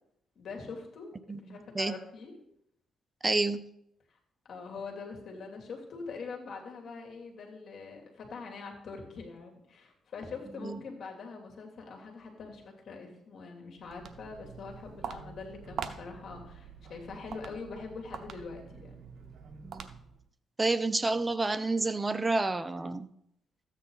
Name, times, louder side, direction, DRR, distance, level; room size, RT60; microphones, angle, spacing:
voice 1, 0.3-2.3 4.4-19.1, left 4 dB, 60° left, 2 dB, 3.0 m, -43 dB
voice 2, 1.3-1.9 3.2-3.6 10.6-10.8 19.6-19.9 20.6-23.1, right 3 dB, 20° right, 12 dB, 0.7 m, -29 dB
Walk footsteps, 13.7-20.3, right 6 dB, 60° right, 0.9 m, -44 dB
13.5 x 9.1 x 4.0 m, 0.76 s
cardioid pair, 90°, 0 cm